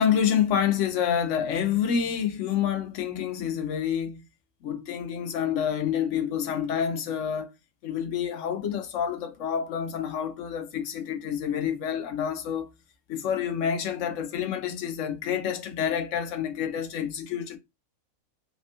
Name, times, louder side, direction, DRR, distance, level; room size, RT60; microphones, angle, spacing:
voice 1, 0.0-4.2 4.6-7.5 7.8-12.7 13.1-17.6, left 8 dB, 70° left, 0.9 m, -28 dB
3.3 x 2.2 x 2.8 m
omnidirectional pair, 1.5 m